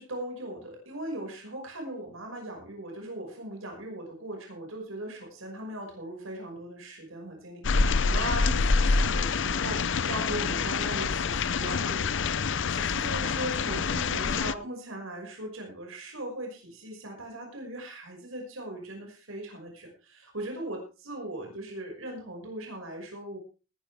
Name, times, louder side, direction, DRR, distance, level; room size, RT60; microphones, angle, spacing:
voice 1, 0.0-23.4, right 1 dB, 85° right, 1 dB, 5.8 m, -39 dB
sound 1, 7.6-14.5, left 4 dB, 65° left, 0.7 m, -26 dB
19.5 x 11.0 x 3.5 m, 0.33 s
head